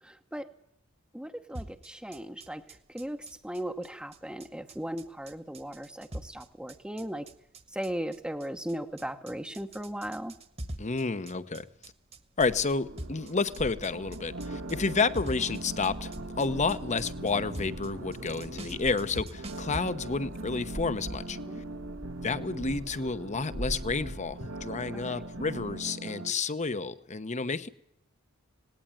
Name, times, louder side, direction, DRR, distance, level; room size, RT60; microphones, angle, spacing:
voice 1, 0.0-0.5 1.1-7.3 7.7-10.3 21.4-21.6 24.9-25.2, right 1 dB, 5° right, 5 dB, 0.9 m, -37 dB
sound 1, 1.5-19.8, right 1 dB, 30° right, 1.4 m, -44 dB
voice 2, 10.8-11.7 12.4-21.4 22.2-27.7, left 4 dB, 35° left, 13 dB, 0.9 m, -30 dB
sound 2, 12.4-25.8, right 1 dB, 65° right, 2.0 m, -43 dB
sound 3, 14.3-26.3, right 2 dB, 85° right, 2.0 m, -41 dB
19.0 x 18.0 x 8.9 m, 0.75 s
head